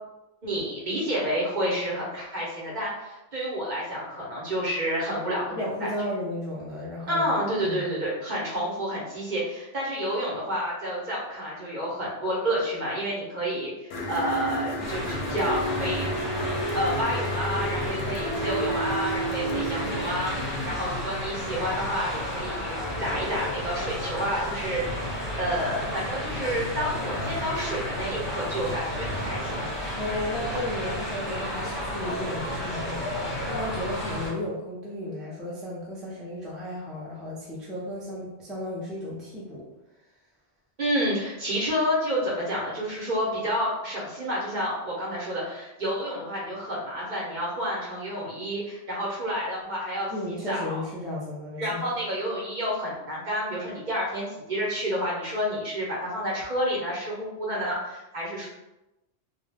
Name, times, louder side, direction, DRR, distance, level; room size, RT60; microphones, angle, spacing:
voice 1, 0.4-5.9 7.1-16.2 16.7-20.3 20.7-29.5 40.8-50.8 51.6-58.5, equal, 45° right, -5 dB, 0.8 m, -29 dB
voice 2, 5.5-7.3 7.6-8.1 20.3-20.8 29.9-39.6 50.1-51.8, left 1 dB, ahead, -7 dB, 0.4 m, -34 dB
sound 1, 13.9-20.7, right 1 dB, 65° left, 0.8 m, -31 dB
sound 2, 14.8-34.3, left 1 dB, 25° left, 0.8 m, -32 dB
Zipper (clothing), 24.2-25.7 26.6-27.8 28.6-29.7 30.3-30.7, right 1 dB, 80° right, 0.9 m, -39 dB
2.3 x 2.1 x 3.3 m, 0.95 s
omnidirectional pair, 1.2 m